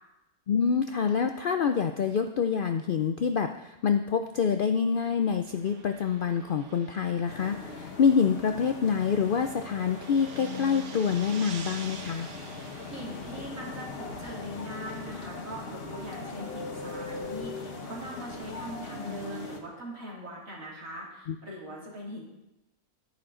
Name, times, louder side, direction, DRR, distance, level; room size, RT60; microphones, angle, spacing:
voice 1, 0.5-12.3 21.3-21.4, left 6 dB, 90° left, 7 dB, 0.4 m, -26 dB
sound 1, 4.7-14.3, right 6 dB, 80° right, 1.4 m, -48 dB
sound 2, 7.3-19.6, left 3 dB, 45° left, 1.3 m, -40 dB
voice 2, 12.9-22.2, equal, 60° right, -4 dB, 3.1 m, -41 dB
11.5 x 10.5 x 3.8 m, 0.96 s
omnidirectional pair, 1.5 m